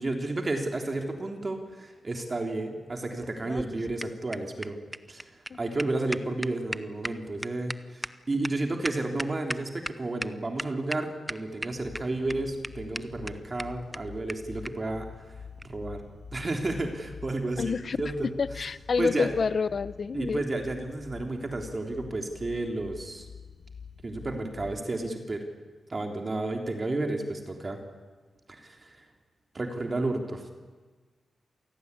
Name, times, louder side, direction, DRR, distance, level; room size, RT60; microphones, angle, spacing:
voice 1, 0.0-4.8 5.1-15.1 15.6-16.0 16.3-18.7 19.0-19.3 20.1-23.3 24.0-25.4 25.9-27.8 28.5-29.0 29.5-30.5, right 2 dB, 35° right, 3 dB, 3.4 m, -32 dB
sound 1, 3.2-9.9 10.2-10.3 10.6-11.0 11.3-12.0 12.3-12.4 12.6-12.7 12.9-13.0 13.3-13.4 13.6-13.7 13.9-14.0 14.3-14.4 14.6-14.7 15.6-15.7, equal, 5° right, 0.8 m, -35 dB
sound 2, 11.7-24.8, left 6 dB, 80° left, 1.9 m, -46 dB
voice 2, 17.6-18.0 18.4-20.4, left 5 dB, 55° left, 16 dB, 0.9 m, -28 dB
27.5 x 18.0 x 9.8 m, 1.4 s
wide cardioid pair, 95°, 0 cm